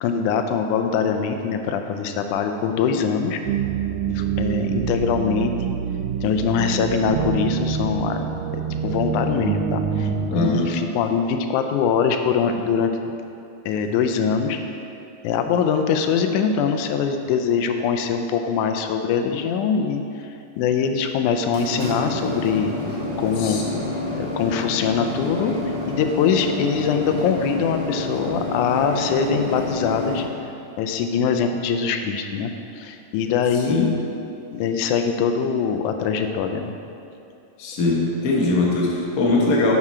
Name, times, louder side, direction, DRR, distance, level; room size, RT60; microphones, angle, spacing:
voice 1, 0.0-3.4 4.1-5.5 6.2-8.2 8.8-10.1 10.4-12.9 13.7-14.6 15.2-20.3 20.6-22.7 23.2-23.6 24.1-25.5 25.9-30.2 30.8-33.9 34.5-36.7, left 6 dB, 85° left, 6 dB, 2.1 m, -23 dB
sound 1, 3.5-10.6, right 6 dB, 90° right, 2.0 m, -25 dB
voice 2, 10.3-10.7 23.4-23.8 33.5-33.9 37.6-39.7, left 2 dB, 55° left, -3 dB, 1.0 m, -21 dB
sound 2, 21.3-30.2, left 2 dB, 55° right, 2.7 m, -28 dB
9.7 x 6.2 x 4.3 m, 2.6 s
omnidirectional pair, 3.4 m